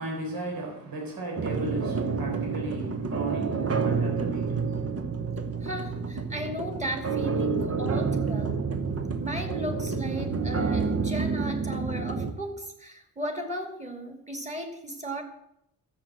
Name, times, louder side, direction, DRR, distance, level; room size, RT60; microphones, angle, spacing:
voice 1, 0.0-4.6, right 2 dB, 65° right, 4.0 m, -35 dB
sound 1, 1.4-12.3, right 5 dB, 40° right, 1.0 m, -29 dB
voice 2, 5.6-8.6 9.2-15.2, equal, 20° right, 2.5 m, -36 dB
13.0 x 7.8 x 7.5 m
wide cardioid pair, 130°, 39 cm